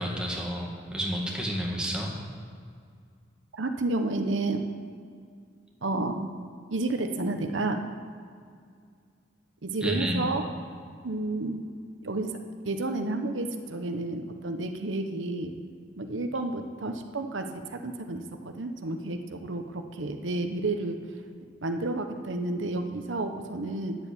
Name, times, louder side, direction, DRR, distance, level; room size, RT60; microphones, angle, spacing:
voice 1, 0.0-2.1 9.8-10.3, equal, 5° right, -3 dB, 1.9 m, -30 dB
voice 2, 3.5-4.6 5.8-6.3 6.7-7.8 9.6-10.4 11.0-11.6 12.0-12.4 12.6-15.5 16.0-21.0 21.6-24.0, right 2 dB, 85° right, 6 dB, 0.9 m, -31 dB
10.5 x 7.1 x 8.4 m, 2.1 s
head